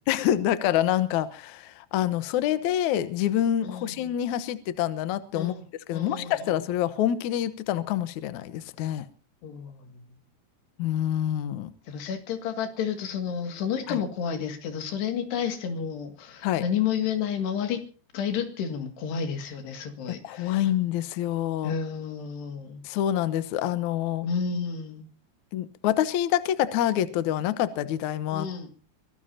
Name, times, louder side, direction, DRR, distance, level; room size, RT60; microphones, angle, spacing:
voice 1, 0.1-5.5 5.9-9.1 10.8-11.7 13.9-14.0 16.4-16.6 20.1-21.7 22.8-24.3 25.5-28.5, left 11 dB, 70° left, 13 dB, 1.8 m, -26 dB
voice 2, 3.6-4.0 5.3-5.6 5.9-6.5 9.4-10.0 11.9-17.8 18.1-20.7 21.6-22.8 24.2-25.1 28.3-28.7, left 7 dB, 85° left, 6 dB, 4.3 m, -31 dB
24.0 x 17.5 x 2.8 m, 0.38 s
omnidirectional pair, 4.7 m